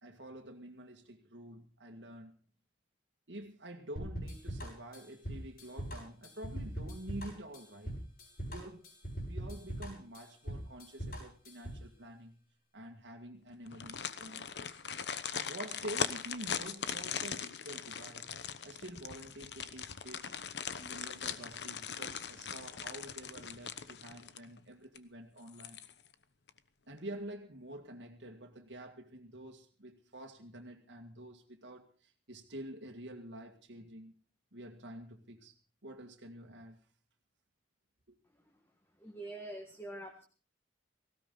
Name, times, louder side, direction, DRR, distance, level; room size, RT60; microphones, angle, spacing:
voice 1, 0.0-2.3 3.3-7.9 8.5-8.9 9.3-12.4 12.7-14.5 15.3-18.3 18.6-20.3 20.8-25.8 26.9-34.1 34.5-35.5 35.8-36.8 38.1-38.2, right 1 dB, 80° right, 2 dB, 2.1 m, -48 dB
sound 1, 4.0-11.9, equal, 50° left, 7.1 m, -41 dB
sound 2, 13.7-24.6 25.0-25.1 25.5-26.1 26.5-26.6, left 7 dB, 70° left, 1.0 m, -40 dB
voice 2, 39.0-40.2, right 1 dB, 15° left, 3 dB, 1.6 m, -45 dB
18.5 x 16.5 x 4.0 m, 0.39 s
head